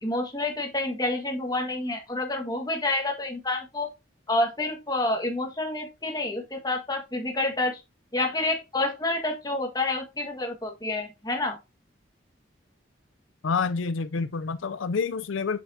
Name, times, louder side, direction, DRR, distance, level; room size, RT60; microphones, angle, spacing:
voice 1, 0.0-3.9 4.3-7.8 8.1-11.6, left 2 dB, 20° left, 1.7 m, -28 dB
voice 2, 13.4-15.6, left 5 dB, 80° left, 0.5 m, -28 dB
7.4 x 6.8 x 2.7 m
head